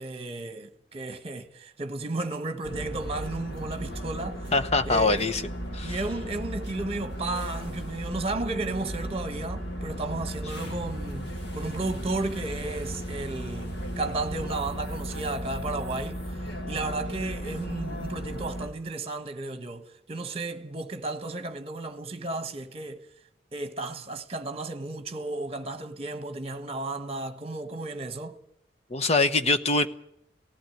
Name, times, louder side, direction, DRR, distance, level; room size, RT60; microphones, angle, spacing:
voice 1, 0.0-4.5 4.8-5.3 5.8-23.0 23.5-28.4, right 2 dB, 35° right, 1.4 m, -34 dB
sound 1, 2.6-18.7, equal, 65° left, 2.8 m, -35 dB
voice 2, 4.5-5.4 5.7-6.0 28.9-29.9, left 3 dB, 35° left, 1.0 m, -23 dB
18.0 x 16.0 x 9.4 m
head